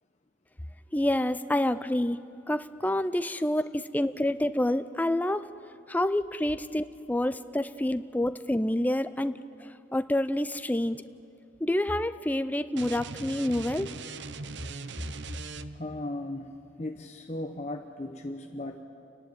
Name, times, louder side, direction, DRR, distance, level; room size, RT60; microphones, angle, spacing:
voice 1, 0.9-5.5 5.9-9.3 9.6-11.0 11.6-13.9, left 1 dB, 10° left, 12 dB, 0.4 m, -28 dB
sound 1, 12.7-16.0, right 4 dB, 70° right, 0.7 m, -40 dB
voice 2, 15.7-18.8, left 1 dB, 35° left, 4 dB, 0.8 m, -37 dB
30.0 x 11.5 x 9.1 m, 2.7 s
head